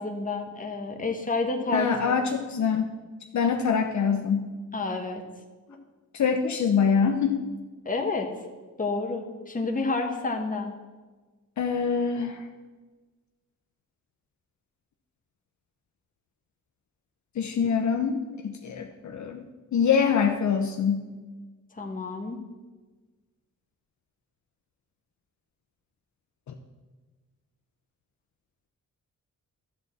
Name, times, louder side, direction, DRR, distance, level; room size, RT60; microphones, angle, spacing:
voice 1, 0.0-2.2 4.7-5.2 5.7-5.8 7.8-8.3 8.8-10.7 21.8-22.4, left 3 dB, 25° left, 3 dB, 1.4 m, -29 dB
voice 2, 1.7-2.9 3.3-4.5 6.1-7.5 11.6-12.5 17.4-19.4 19.7-21.1 26.5-26.6, left 6 dB, 60° left, 4 dB, 0.8 m, -25 dB
12.5 x 4.2 x 7.4 m, 1.3 s
cardioid pair, 95°, 32 cm